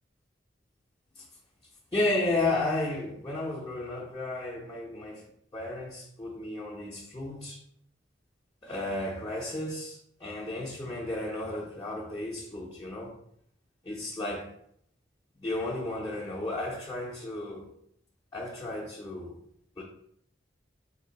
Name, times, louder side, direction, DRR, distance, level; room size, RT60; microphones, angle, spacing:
voice 1, 1.9-5.3 5.5-7.6 8.6-13.2 13.8-14.5 15.4-17.7 18.3-19.4 19.8-19.9, left 2 dB, 20° left, -4 dB, 0.5 m, -33 dB
3.7 x 2.6 x 3.9 m, 0.71 s
head